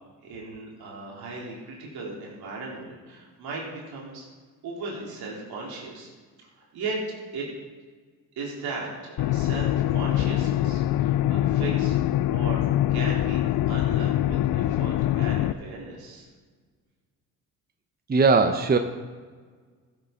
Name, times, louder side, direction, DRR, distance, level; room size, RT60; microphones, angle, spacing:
voice 1, 0.2-4.3 4.6-6.1 6.4-7.0 7.3-7.5 8.4-12.6 12.9-16.3, right 3 dB, 70° right, -3 dB, 3.8 m, -37 dB
sound 1, 9.2-15.5, left 13 dB, 60° left, 0.5 m, -24 dB
voice 2, 18.1-18.8, right 4 dB, 25° right, 7 dB, 0.9 m, -19 dB
15.5 x 8.4 x 4.0 m, 1.5 s
supercardioid pair, 60°, 39 cm